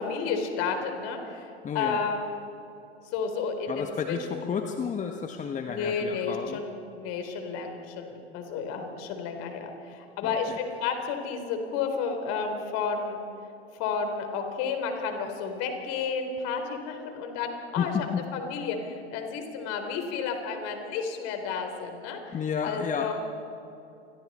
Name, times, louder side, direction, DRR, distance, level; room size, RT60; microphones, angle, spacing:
voice 1, 0.0-2.5 3.1-4.4 5.6-13.2 13.8-17.9 18.3-22.2 22.6-23.1, left 5 dB, 50° left, 5 dB, 3.9 m, -32 dB
voice 2, 1.6-2.0 3.7-6.6 10.2-10.4 17.8-18.2 22.3-23.1, left 7 dB, 25° left, 5 dB, 1.3 m, -31 dB
29.0 x 22.5 x 4.3 m, 2.8 s
hypercardioid pair, 95°, 33 cm